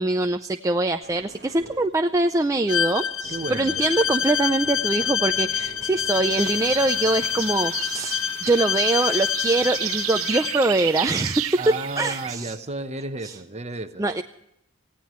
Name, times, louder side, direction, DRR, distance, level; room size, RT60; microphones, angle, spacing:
voice 1, 0.0-11.6 12.0-12.5 13.2-13.3 14.0-14.2, right 2 dB, 15° right, 0.5 m, -23 dB
sound 1, 1.0-12.0 12.5-12.7, right 2 dB, 55° right, 1.5 m, -48 dB
Bowed string instrument, 2.7-10.6, left 9 dB, 70° left, 0.8 m, -27 dB
voice 2, 3.3-3.8 11.6-14.1, right 2 dB, 30° right, 1.0 m, -32 dB
sound 2, 6.4-12.4, right 13 dB, 80° right, 0.6 m, -32 dB
25.5 x 16.5 x 3.1 m
head